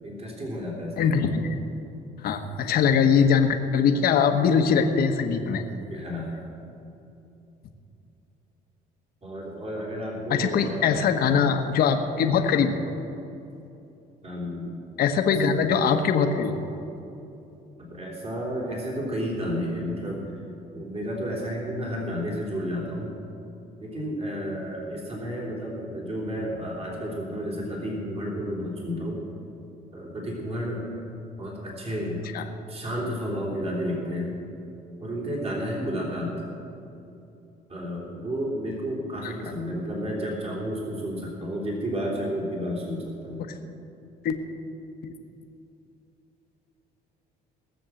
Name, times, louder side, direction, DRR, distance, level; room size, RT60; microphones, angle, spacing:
voice 1, 0.0-1.1 5.9-6.3 9.2-10.9 11.2-11.4 14.2-14.7 15.2-15.6 17.8-20.3 20.7-23.2 23.8-29.2 29.9-31.0 31.4-32.2 32.7-34.4 35.0-36.3 37.7-43.5, equal, 35° right, -3 dB, 3.4 m, -31 dB
voice 2, 1.0-1.5 2.2-5.6 10.3-12.8 15.0-16.7 32.3-32.4 39.2-39.3 44.2-44.4, left 6 dB, 65° left, 6 dB, 1.1 m, -22 dB
18.0 x 7.2 x 7.7 m, 2.8 s
cardioid pair, 110°, 17 cm